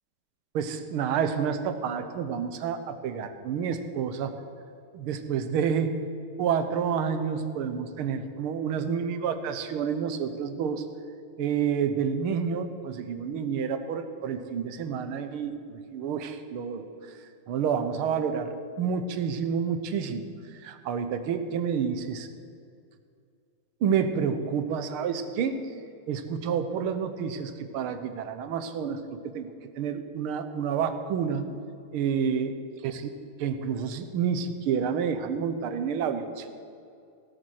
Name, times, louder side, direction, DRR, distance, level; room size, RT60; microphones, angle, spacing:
voice 1, 0.5-4.3 4.9-5.9 6.4-10.8 11.4-16.9 17.5-20.2 20.6-22.3 23.8-25.6 26.1-29.5 29.8-31.5 31.9-32.5 32.8-32.9 33.4-36.5, right 7 dB, 80° right, 9 dB, 1.8 m, -29 dB
17.0 x 8.5 x 6.4 m, 2.4 s
omnidirectional pair, 2.4 m